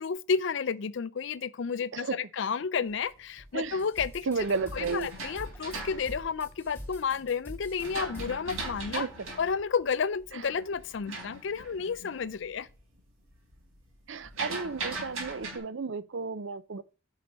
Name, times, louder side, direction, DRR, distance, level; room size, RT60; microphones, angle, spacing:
voice 1, 0.0-4.3 4.7-9.1 9.4-12.7, left 6 dB, 60° left, 0.4 m, -31 dB
sound 1, 3.2-7.0 7.5-12.3 12.6-13.1 13.3-15.6, right 3 dB, 80° right, 3.9 m, -40 dB
sound 2, 3.7-8.8, equal, 10° left, 1.7 m, -45 dB
voice 2, 4.3-5.1 8.9-9.1 10.3-10.5 14.1-16.8, right 4 dB, 60° right, 0.5 m, -33 dB
9.5 x 5.6 x 5.1 m
head